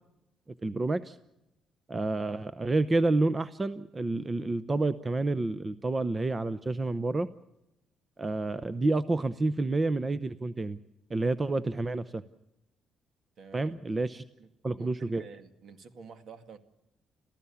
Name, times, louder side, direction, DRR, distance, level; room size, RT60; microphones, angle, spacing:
voice 1, 0.6-1.2 1.9-7.3 8.2-10.8 11.1-12.2 13.5-14.2 14.6-15.2, right 2 dB, 25° right, 14 dB, 0.7 m, -29 dB
voice 2, 13.4-13.7 14.4-14.5 14.8-16.6, right 5 dB, 60° right, 8 dB, 2.2 m, -49 dB
29.0 x 15.0 x 7.1 m, 0.89 s
cardioid pair, 90°, 0 cm